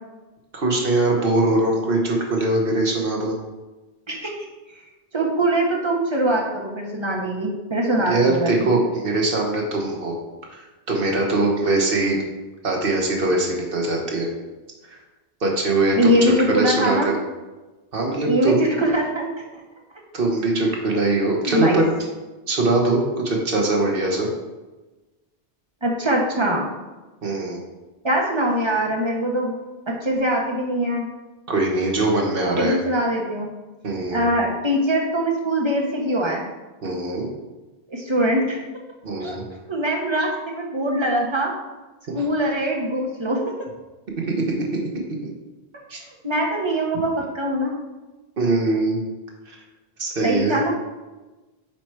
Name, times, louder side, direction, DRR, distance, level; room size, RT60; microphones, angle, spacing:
voice 1, 0.5-3.4 8.1-10.2 10.5-12.2 12.6-14.3 14.9-15.0 15.4-17.1 17.9-18.5 20.1-21.8 22.5-24.3 27.2-27.6 31.5-32.8 33.8-34.3 36.8-37.3 39.0-39.4 42.2-42.3 44.2-44.3 45.2-45.3 45.9-46.0 48.4-49.0 49.5-49.6 50.0-50.6, right 2 dB, 65° right, 0 dB, 1.4 m, -22 dB
voice 2, 5.1-8.7 15.9-17.1 18.2-19.3 21.5-21.8 25.8-26.6 28.0-29.6 29.9-31.1 32.6-33.5 34.1-36.4 37.9-38.6 39.2-39.4 39.7-41.5 42.1-43.4 46.2-47.8 50.2-50.8, right 1 dB, 30° right, -1 dB, 1.1 m, -22 dB
9.0 x 3.1 x 4.6 m, 1.2 s
omnidirectional pair, 1.0 m